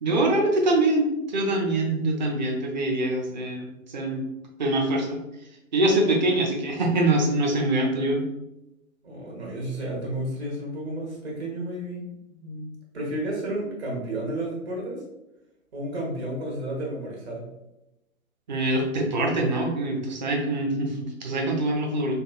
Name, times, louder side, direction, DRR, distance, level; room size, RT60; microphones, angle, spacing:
voice 1, 0.0-4.2 4.6-5.2 5.7-8.3 18.5-22.1, right 1 dB, 35° right, 1 dB, 0.6 m, -24 dB
voice 2, 9.0-12.0 12.3-12.7 12.9-15.0 15.7-17.5, right 1 dB, 50° right, -3 dB, 1.4 m, -32 dB
5.2 x 2.3 x 2.4 m, 0.92 s
figure-of-eight pair, 125°, 42 cm